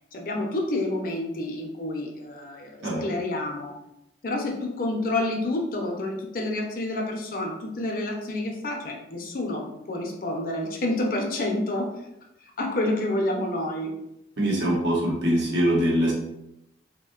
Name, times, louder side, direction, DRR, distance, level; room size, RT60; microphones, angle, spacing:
voice 1, 0.1-3.7 4.2-11.9 12.6-13.9, left 1 dB, 50° left, 1 dB, 0.5 m, -29 dB
voice 2, 14.4-16.1, equal, 80° right, -3 dB, 0.8 m, -23 dB
3.6 x 2.1 x 2.3 m, 0.85 s
head